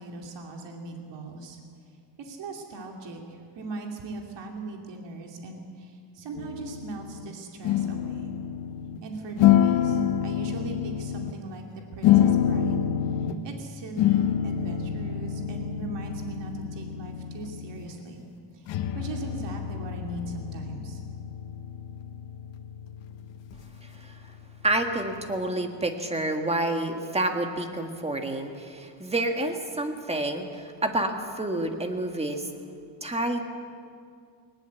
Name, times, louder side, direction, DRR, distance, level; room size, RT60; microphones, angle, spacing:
voice 1, 0.0-1.6 2.2-3.2 3.5-8.3 9.0-18.3 18.5-21.0, right 3 dB, 65° right, 2 dB, 2.7 m, -39 dB
sound 1, 6.3-7.3 7.6-9.0 9.4-11.4 12.0-13.4 14.0-17.9 18.7-25.2, left 10 dB, 75° left, 1.3 m, -27 dB
voice 2, 23.8-24.1 24.6-32.5 33.0-33.5, right 2 dB, 15° right, 5 dB, 1.7 m, -29 dB
20.0 x 19.5 x 8.1 m, 2.2 s
cardioid pair, 150°, 45 cm